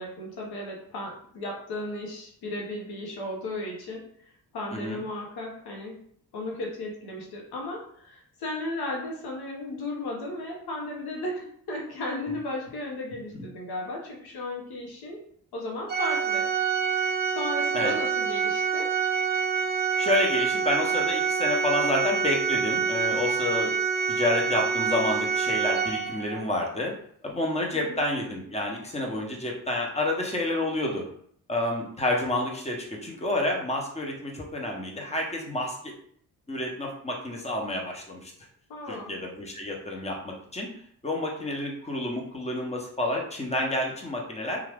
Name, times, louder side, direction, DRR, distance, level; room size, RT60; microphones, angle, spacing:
voice 1, 0.0-4.0 4.5-6.0 6.3-15.2 15.5-16.5 17.3-18.9 27.7-28.0 38.7-39.1, left 1 dB, 80° left, -1 dB, 0.9 m, -35 dB
Organ, 15.9-26.5, right 6 dB, 25° right, 0.4 m, -26 dB
voice 2, 20.0-23.7 24.1-26.9 27.2-31.0 31.5-35.9 36.5-38.3 38.9-40.7 41.0-44.6, left 1 dB, 15° left, 0 dB, 0.9 m, -29 dB
2.7 x 2.4 x 3.4 m, 0.62 s
cardioid pair, 65°, 38 cm